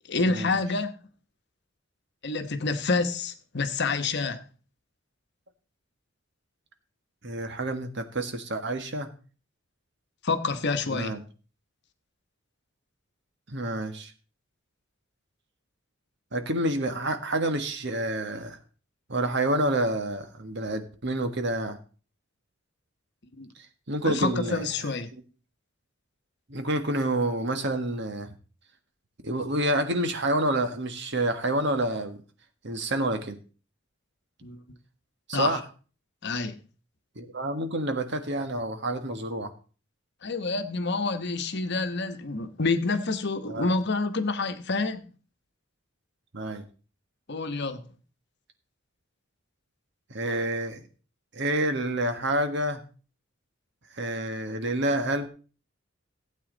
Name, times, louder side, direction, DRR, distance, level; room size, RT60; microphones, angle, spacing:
voice 1, 0.1-0.9 2.2-4.4 10.2-11.2 23.4-23.5 24.0-25.1 34.4-34.6 35.3-35.6 36.2-36.6 40.2-45.1 47.3-47.8, left 3 dB, 55° left, 1.2 m, -28 dB
voice 2, 7.2-9.1 10.9-11.2 13.5-14.1 16.3-18.6 19.1-21.8 23.9-24.6 26.5-28.3 29.2-32.2 32.6-33.4 35.3-35.6 37.1-39.5 43.5-43.7 46.3-46.6 50.1-50.9 51.3-52.8 53.9-55.3, right 1 dB, 60° right, 1.6 m, -28 dB
15.5 x 8.5 x 4.0 m
head